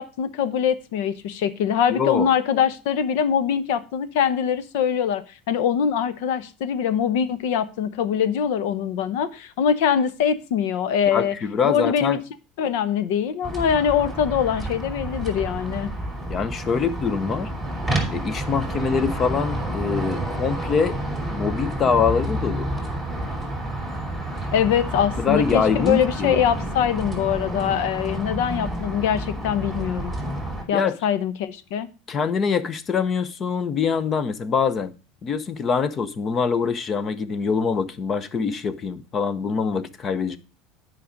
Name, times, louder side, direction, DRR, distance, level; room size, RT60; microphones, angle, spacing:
voice 1, 0.0-11.3 11.6-12.2 12.6-15.9 24.5-30.1 30.7-31.9, left 8 dB, 75° left, 0.9 m, -23 dB
voice 2, 1.9-2.3 11.1-12.2 16.3-17.5 18.1-21.0 21.3-22.7 25.2-26.3 30.7-31.0 32.1-34.9 35.2-40.4, left 6 dB, 25° left, 0.7 m, -24 dB
sound 1, 13.4-30.6, right 1 dB, ahead, 2.5 m, -29 dB
9.8 x 5.1 x 5.1 m
cardioid pair, 165°, 0 cm